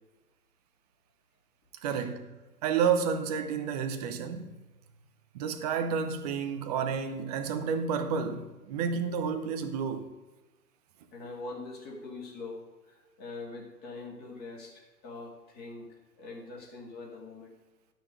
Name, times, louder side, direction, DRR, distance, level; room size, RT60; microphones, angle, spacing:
voice 1, 1.8-2.3 2.6-4.5 5.3-10.1, right 6 dB, 25° right, 0.8 m, -30 dB
voice 2, 11.1-12.6 12.9-15.9 16.2-17.5, left 3 dB, 20° left, 2.1 m, -43 dB
11.5 x 6.2 x 5.1 m
figure-of-eight pair, 125°, 48 cm